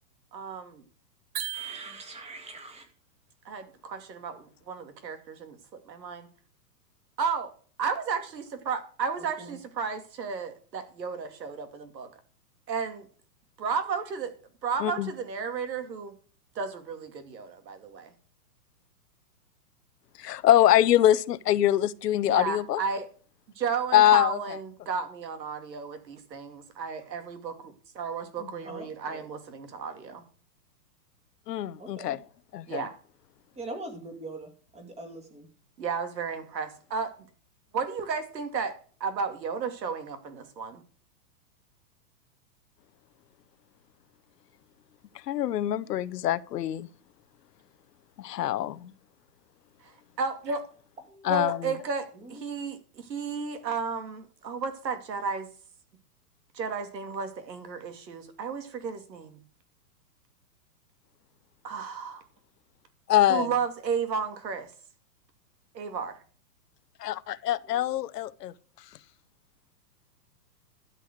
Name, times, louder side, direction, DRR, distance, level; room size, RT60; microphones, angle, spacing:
voice 1, 0.3-0.8 3.4-5.6 5.9-6.3 7.2-7.5 7.8-12.1 12.7-13.1 13.6-14.3 14.6-16.1 16.5-18.1 22.3-23.1 23.6-30.2 32.7-32.9 35.8-37.1 37.7-40.8 49.8-50.6 51.3-55.5 56.5-59.4 61.6-62.2 63.3-64.7 65.7-66.2, right 5 dB, 80° right, 2.7 m, -33 dB
sound 1, 1.3-2.5, right 11 dB, 60° right, 1.6 m, -37 dB
voice 2, 1.5-2.8 9.2-9.6 28.6-29.3 31.8-32.2 33.6-35.5 51.1-51.3 52.1-52.5 67.6-68.0, right 2 dB, 10° right, 2.4 m, -43 dB
voice 3, 20.2-22.8 23.9-24.4 31.5-32.2 32.5-32.8 45.3-46.9 48.2-48.8 51.3-51.6 63.1-63.5 67.0-68.5, left 12 dB, 70° left, 0.9 m, -23 dB
13.0 x 5.6 x 8.0 m
hypercardioid pair, 150°, 49 cm